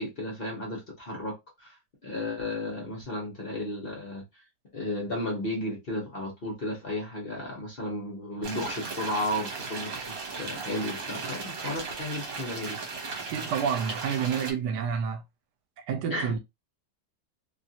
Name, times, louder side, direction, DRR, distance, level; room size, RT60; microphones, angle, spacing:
voice 1, 0.0-4.2 4.7-10.1 10.4-12.8 16.1-16.3, left 1 dB, 40° left, 0.9 m, -34 dB
sound 1, 8.4-14.5, right 4 dB, 60° right, 1.3 m, -36 dB
voice 2, 13.3-15.2 15.9-16.4, right 7 dB, 80° right, 1.2 m, -29 dB
2.9 x 2.4 x 2.7 m
omnidirectional pair, 1.8 m